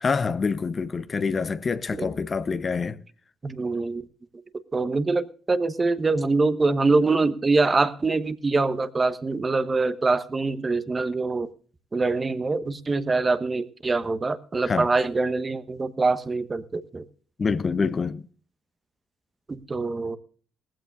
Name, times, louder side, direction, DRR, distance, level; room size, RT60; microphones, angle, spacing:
voice 1, 0.0-3.0 14.6-14.9 17.4-18.3, left 5 dB, 40° left, 0.8 m, -26 dB
voice 2, 3.4-4.0 4.7-11.5 11.9-17.0 19.5-20.2, right 3 dB, 30° right, 1.2 m, -24 dB
19.0 x 15.5 x 2.4 m
hypercardioid pair, 50°, 0 cm